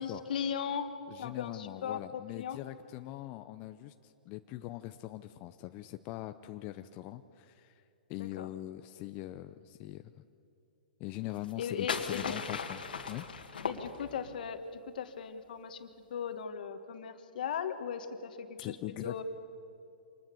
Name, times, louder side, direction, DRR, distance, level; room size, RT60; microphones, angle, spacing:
voice 1, 0.0-0.9 1.2-2.6 8.2-8.5 11.6-12.3 13.7-18.8 19.0-19.2, left 7 dB, 65° left, 9 dB, 1.8 m, -38 dB
voice 2, 1.1-7.8 8.1-10.2 11.0-12.8 13.1-13.3 18.6-19.2, left 16 dB, 35° left, 9 dB, 0.7 m, -42 dB
sound 1, 11.4-14.4, left 6 dB, 80° left, 2.1 m, -38 dB
26.5 x 20.0 x 7.1 m, 2.7 s
hypercardioid pair, 125°, 5 cm